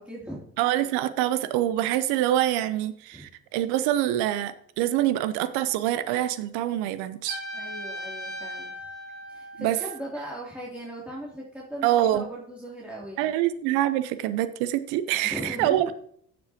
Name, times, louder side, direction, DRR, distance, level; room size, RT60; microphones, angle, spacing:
voice 1, 0.0-0.5 3.1-3.3 7.5-8.7 9.3-13.3 15.2-15.8, equal, 5° right, -5 dB, 3.1 m, -38 dB
voice 2, 0.6-7.4 9.6-9.8 11.8-12.3 13.2-15.9, right 13 dB, 70° right, 13 dB, 0.8 m, -25 dB
Trumpet, 7.3-10.1, equal, 85° left, 4.2 m, -38 dB
15.0 x 7.6 x 3.0 m, 0.63 s
hypercardioid pair, 55°, 41 cm